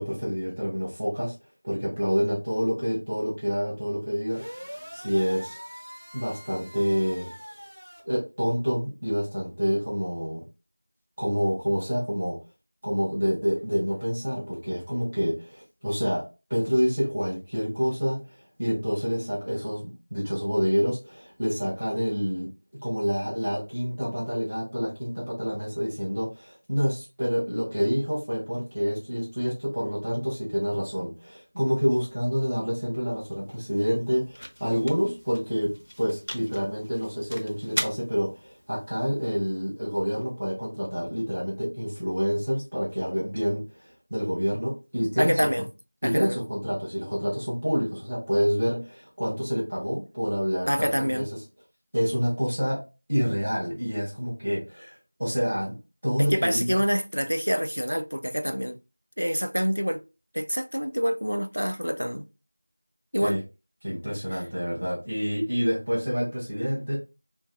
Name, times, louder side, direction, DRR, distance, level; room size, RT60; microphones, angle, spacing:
voice 1, 0.0-1.3 1.6-4.4 4.9-5.6 6.1-7.3 8.1-10.4 11.2-12.4 12.8-18.2 18.6-22.5 22.8-35.7 36.0-45.3 46.0-51.4 51.9-52.8 53.1-55.8 56.0-56.8 63.2-63.4 63.8-67.0, equal, 5° right, 0.3 m, -27 dB
sound 1, 4.3-8.0, equal, 40° right, 0.8 m, -43 dB
sound 2, 32.8-40.9, equal, 85° left, 0.8 m, -40 dB
voice 2, 45.2-45.7 46.0-46.4 50.7-51.3 56.2-58.8 59.2-60.0 60.3-62.3 63.1-63.4, equal, 75° right, 0.4 m, -26 dB
2.8 x 2.6 x 3.3 m
figure-of-eight pair, 180°, 0 cm